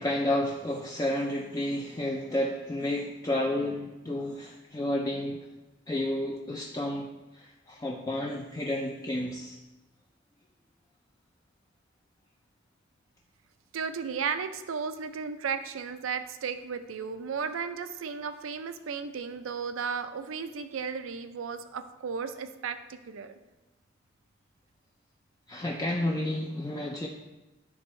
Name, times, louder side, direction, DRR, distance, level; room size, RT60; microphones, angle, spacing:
voice 1, 0.0-5.4 5.9-7.1 7.3-9.6 25.5-27.1, left 1 dB, 20° left, 1 dB, 0.3 m, -31 dB
voice 2, 13.7-23.4, right 6 dB, 85° right, 10 dB, 0.5 m, -34 dB
10.5 x 3.5 x 3.1 m, 1.1 s
head